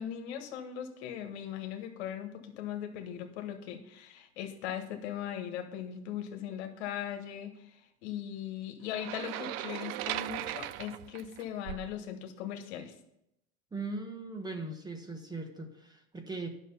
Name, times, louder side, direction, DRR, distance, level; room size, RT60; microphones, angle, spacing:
voice 1, 0.0-12.9, left 10 dB, 70° left, 6 dB, 1.4 m, -39 dB
sound 1, 8.9-12.0, right 14 dB, 45° right, 0.5 m, -38 dB
voice 2, 13.7-16.5, right 3 dB, 10° right, 5 dB, 1.1 m, -39 dB
9.5 x 6.2 x 5.6 m, 0.82 s
supercardioid pair, 110°, 34 cm